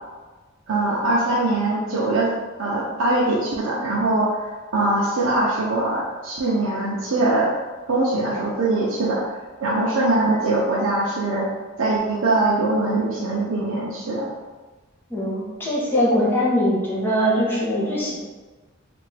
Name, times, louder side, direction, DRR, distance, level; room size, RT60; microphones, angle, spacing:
voice 1, 0.7-2.3 2.6-7.5 7.9-9.2 9.6-11.5 11.8-14.3, right 2 dB, 85° right, -5 dB, 0.5 m, -22 dB
voice 2, 15.1-18.2, equal, 10° left, -6 dB, 0.9 m, -21 dB
3.3 x 2.5 x 3.2 m, 1.3 s
head